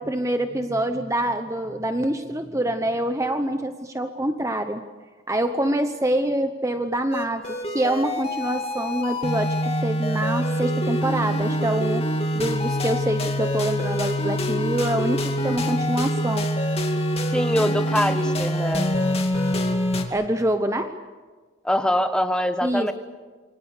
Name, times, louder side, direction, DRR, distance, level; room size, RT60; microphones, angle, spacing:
voice 1, 0.0-4.8 5.3-16.5 20.1-20.9 22.6-22.9, right 1 dB, 15° right, 7 dB, 0.9 m, -25 dB
sound 1, 7.1-20.0, equal, 30° left, 2.5 m, -25 dB
voice 2, 17.3-18.9 21.6-22.9, equal, 5° left, 8 dB, 1.1 m, -23 dB
28.0 x 24.0 x 6.7 m, 1.4 s
head